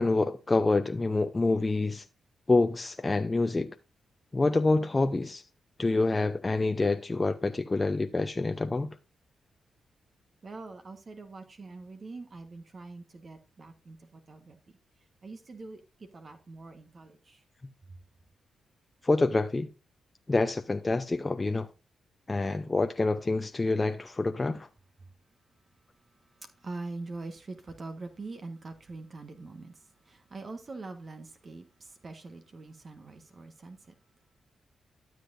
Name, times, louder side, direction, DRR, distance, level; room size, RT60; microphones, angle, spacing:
voice 1, 0.0-2.0 2.5-3.8 4.3-5.4 5.8-8.9 19.0-19.7 20.3-21.7 22.3-24.7, left 3 dB, 30° left, 0.7 m, -27 dB
voice 2, 10.4-14.6 15.2-15.8 16.1-17.4 26.6-29.7 30.1-31.6 32.0-33.8, right 3 dB, 45° right, 1.4 m, -43 dB
12.5 x 7.7 x 2.6 m
hypercardioid pair, 40°, 0 cm